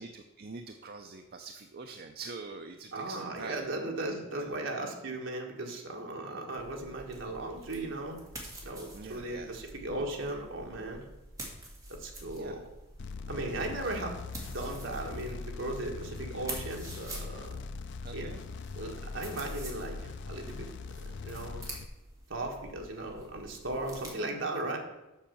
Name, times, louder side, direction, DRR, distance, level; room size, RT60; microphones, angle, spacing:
voice 1, 0.0-4.5 6.2-6.4 8.9-9.5 12.3-12.6 18.0-18.4, right 4 dB, 50° right, 6 dB, 0.5 m, -45 dB
voice 2, 2.9-8.2 8.6-11.1 11.9-12.6 13.3-17.6 18.1-18.3 18.8-21.7 22.3-24.8, right 2 dB, 65° right, 1 dB, 1.7 m, -37 dB
sound 1, 6.6-24.1, right 1 dB, 15° right, 1.9 m, -47 dB
sound 2, 13.0-21.8, left 4 dB, 60° left, 0.4 m, -42 dB
7.3 x 6.2 x 7.0 m, 0.96 s
head